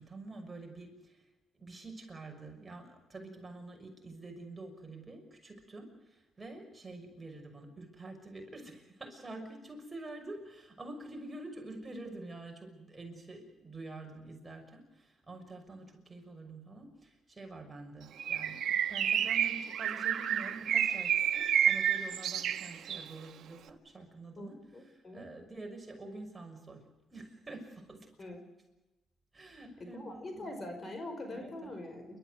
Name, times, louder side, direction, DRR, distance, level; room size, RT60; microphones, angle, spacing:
voice 1, 0.0-28.1 29.3-30.6 31.4-31.7, right 2 dB, 20° right, 3 dB, 6.1 m, -47 dB
Bird, 18.2-23.1, right 9 dB, 70° right, 1.4 m, -30 dB
voice 2, 24.4-25.3 28.2-28.4 29.8-32.2, left 1 dB, 35° left, 7 dB, 5.2 m, -43 dB
28.5 x 13.5 x 9.6 m, 1.0 s
cardioid pair, 90°, 0 cm